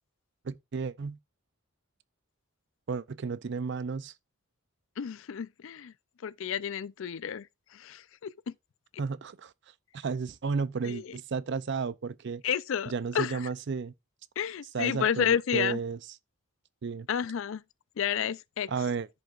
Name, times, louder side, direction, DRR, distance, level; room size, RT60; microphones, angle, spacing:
voice 1, 0.4-1.2 2.9-4.1 9.0-9.5 9.9-12.4 12.9-13.9 14.7-16.0 16.8-17.1 18.7-19.1, right 5 dB, 55° right, 0.4 m, -33 dB
voice 2, 5.0-5.9 6.2-7.5 7.7-8.3 10.8-11.1 12.4-13.4 14.4-15.8 17.1-17.6 18.0-18.7, left 8 dB, 65° left, 0.4 m, -30 dB
14.0 x 5.3 x 2.4 m
head